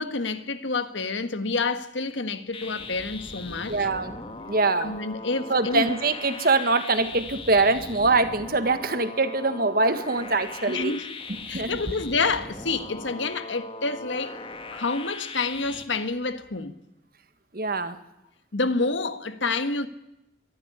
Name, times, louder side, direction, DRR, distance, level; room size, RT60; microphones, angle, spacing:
voice 1, 0.0-3.7 4.8-5.9 10.7-11.1 11.5-14.4 14.7-16.7 18.5-19.9, left 3 dB, 75° left, 1.6 m, -28 dB
sound 1, 2.5-15.8, left 3 dB, 30° left, 1.7 m, -39 dB
voice 2, 3.7-4.1 4.5-4.9 5.5-11.0 11.3-12.1 17.5-18.0, right 3 dB, 50° right, 1.8 m, -24 dB
23.5 x 13.5 x 10.0 m
head